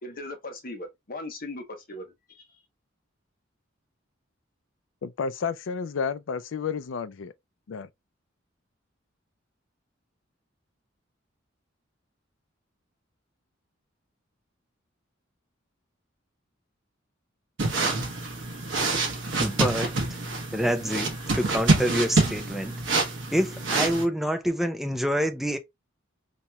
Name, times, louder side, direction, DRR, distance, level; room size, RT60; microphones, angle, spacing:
voice 1, 0.0-2.5, left 2 dB, 45° left, 0.9 m, -39 dB
voice 2, 5.0-7.3 7.7-7.9, left 5 dB, 75° left, 0.4 m, -31 dB
sound 1, 17.6-24.0, right 3 dB, 70° right, 1.0 m, -26 dB
voice 3, 19.4-19.9 20.5-22.7 23.3-25.6, equal, ahead, 0.5 m, -27 dB
4.1 x 3.0 x 2.2 m
head